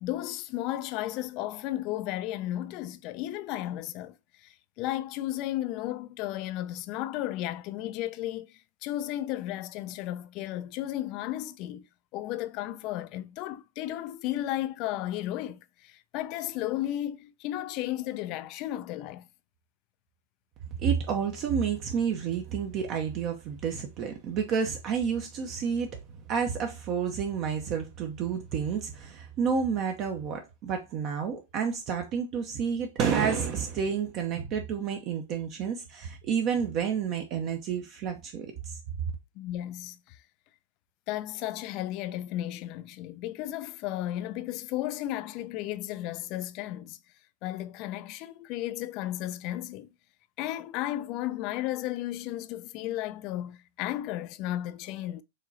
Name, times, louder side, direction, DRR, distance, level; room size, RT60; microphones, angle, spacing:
voice 1, 0.0-4.1 4.4-11.8 12.1-19.3 39.4-40.2 41.1-47.0 47.4-49.9 50.4-55.2, left 14 dB, 40° left, 0.4 m, -34 dB
voice 2, 20.8-25.9 26.3-38.8, right 7 dB, 35° right, 0.8 m, -30 dB
4.8 x 3.0 x 2.8 m
hypercardioid pair, 135°, 0 cm